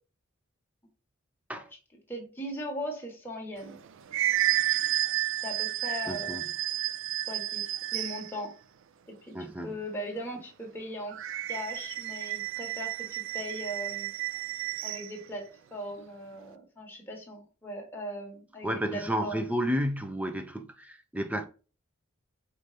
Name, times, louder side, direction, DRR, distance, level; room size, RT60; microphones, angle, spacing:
voice 1, 2.1-3.8 5.4-6.4 7.3-8.5 9.3-11.2 11.5-14.1 14.8-19.4, equal, 10° left, 1.4 m, -39 dB
sound 1, 3.6-8.4 11.1-15.1, right 14 dB, 65° right, 0.4 m, -31 dB
voice 2, 6.1-6.4 9.3-9.7 18.6-21.5, equal, 5° right, 0.5 m, -31 dB
5.0 x 3.1 x 2.7 m
head